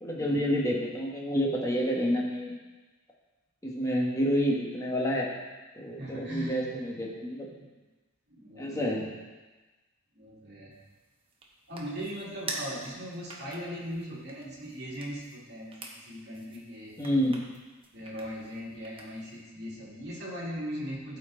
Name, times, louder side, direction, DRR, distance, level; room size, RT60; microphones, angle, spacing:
voice 1, 0.0-2.5 3.6-5.3 5.8-7.5 8.6-9.1 17.0-17.4, equal, 15° left, -3 dB, 1.3 m, -28 dB
voice 2, 6.0-6.8 7.4-7.7 8.3-9.1 10.1-10.8 11.7-15.8 16.1-17.0 17.9-21.2, equal, 55° right, -5 dB, 2.4 m, -39 dB
sound 1, 10.7-19.4, right 2 dB, 25° right, 1.0 m, -46 dB
13.0 x 4.5 x 3.8 m, 1.2 s
head